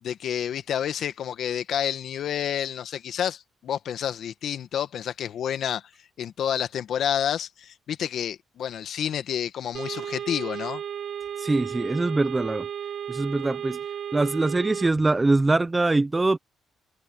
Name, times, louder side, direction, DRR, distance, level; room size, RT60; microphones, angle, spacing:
voice 1, 0.0-5.8 6.2-10.8, left 9 dB, 65° left, 1.8 m, -29 dB
sound 1, 9.7-14.9, right 8 dB, 60° right, 2.2 m, -34 dB
voice 2, 11.4-12.7 13.1-13.8 14.1-16.4, right 2 dB, 20° right, 0.9 m, -23 dB
cardioid pair, 90°, 0 cm